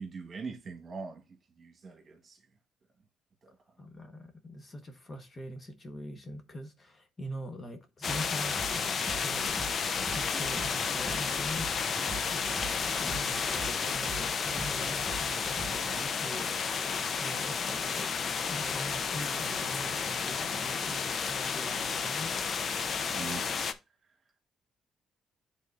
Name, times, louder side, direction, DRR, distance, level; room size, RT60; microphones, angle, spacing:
voice 1, 0.0-2.4 3.4-3.6 23.1-23.5, right 4 dB, 40° right, 1.6 m, -42 dB
voice 2, 3.8-9.0 9.2-9.5 10.1-11.7 12.3-16.6 17.2-18.1 18.5-22.3, equal, 30° left, 1.2 m, -43 dB
sound 1, 8.0-23.7, left 6 dB, 50° left, 0.6 m, -32 dB
sound 2, 8.1-16.1, right 2 dB, 20° right, 1.7 m, -43 dB
11.0 x 3.7 x 2.6 m
cardioid pair, 110°, 0 cm